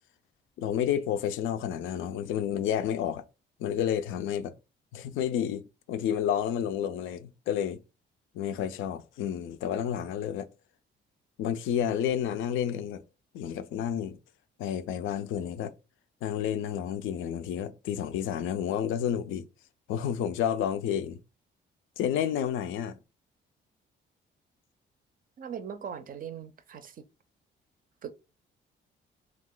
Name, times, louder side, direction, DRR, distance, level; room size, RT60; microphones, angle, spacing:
voice 1, 0.6-3.2 3.6-4.5 4.9-7.8 8.3-10.5 11.4-13.0 13.3-14.2 14.6-15.7 16.2-19.5 19.9-21.2 22.0-23.0, left 9 dB, 85° left, 0.4 m, -30 dB
voice 2, 25.4-27.0 28.0-28.1, right 7 dB, 45° right, 0.4 m, -40 dB
2.4 x 2.3 x 3.6 m
cardioid pair, 90°, 20 cm